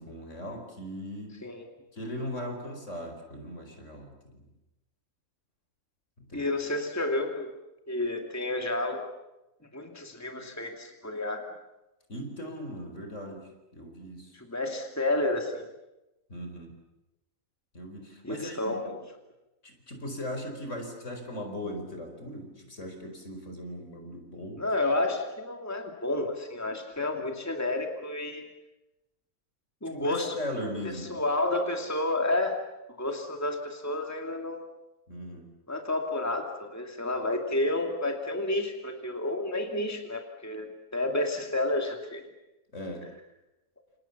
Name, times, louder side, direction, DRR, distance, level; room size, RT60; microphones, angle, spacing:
voice 1, 0.0-1.3 1.9-4.4 6.2-6.4 12.1-13.4 13.7-14.3 16.3-16.7 17.7-18.8 19.6-24.7 29.9-31.2 35.1-35.5 42.7-43.0, left 1 dB, 55° left, 4 dB, 4.9 m, -38 dB
voice 2, 6.3-7.5 7.9-9.0 9.7-11.4 14.3-15.7 18.2-19.0 24.6-28.4 29.8-30.4 31.1-32.6 33.0-34.7 35.7-42.2, left 2 dB, 10° left, 3 dB, 2.5 m, -30 dB
29.0 x 28.5 x 7.2 m, 0.97 s
omnidirectional pair, 1.5 m